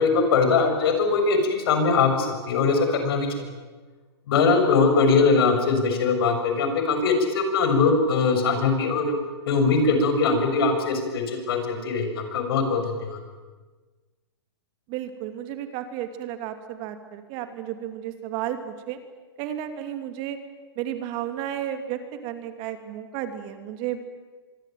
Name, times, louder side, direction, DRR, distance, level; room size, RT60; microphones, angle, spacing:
voice 1, 0.0-3.5 4.3-9.1 9.4-13.2, left 4 dB, 60° left, 6 dB, 6.9 m, -21 dB
voice 2, 14.9-19.0 19.4-20.4 20.8-24.2, right 11 dB, 35° right, 8 dB, 2.6 m, -33 dB
25.0 x 23.0 x 9.2 m, 1.3 s
hypercardioid pair, 145°, 14 cm